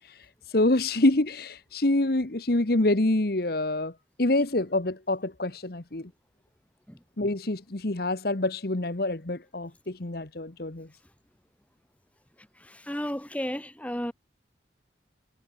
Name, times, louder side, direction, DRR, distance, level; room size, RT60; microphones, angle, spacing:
voice 1, 0.5-3.9 4.2-6.1 7.2-10.9, left 2 dB, 55° left, 1.3 m, -26 dB
voice 2, 12.4-14.1, equal, 5° left, 2.2 m, -34 dB
head